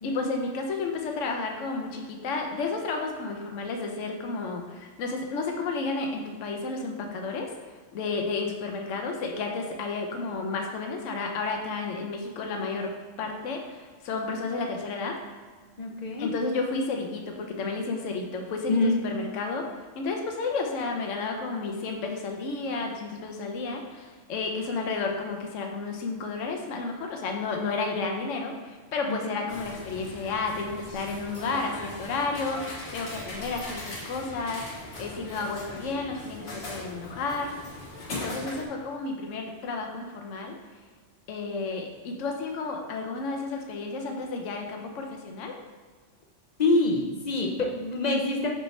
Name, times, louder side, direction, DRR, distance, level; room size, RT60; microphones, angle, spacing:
voice 1, 0.0-12.9 13.2-15.2 16.2-18.8 19.0-19.7 20.0-37.5 38.1-40.6 41.3-45.5, left 3 dB, 80° left, 2 dB, 1.1 m, -32 dB
voice 2, 15.8-16.3 18.7-19.0 29.1-29.4 46.6-48.5, left 2 dB, 40° left, 0 dB, 0.7 m, -26 dB
sound 1, 29.5-38.6, left 1 dB, 55° left, 1.4 m, -40 dB
5.9 x 5.3 x 3.2 m, 1.5 s
omnidirectional pair, 1.3 m